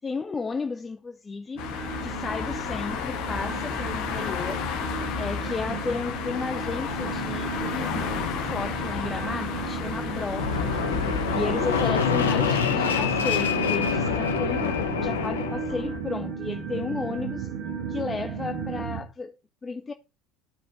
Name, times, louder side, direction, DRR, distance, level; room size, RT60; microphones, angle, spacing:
voice 1, 0.0-1.6 2.0-4.7 5.2-17.5 17.9-19.3 19.6-19.9, left 4 dB, 20° left, 0.7 m, -33 dB
sound 1, 1.5-19.0, right 6 dB, 55° right, 2.4 m, -34 dB
sound 2, 1.6-11.9, left 8 dB, 60° left, 1.5 m, -32 dB
Fixed-wing aircraft airplane, 10.3-16.0, left 6 dB, 75° left, 1.1 m, -26 dB
12.5 x 5.1 x 4.6 m
figure-of-eight pair, 70°, 0 cm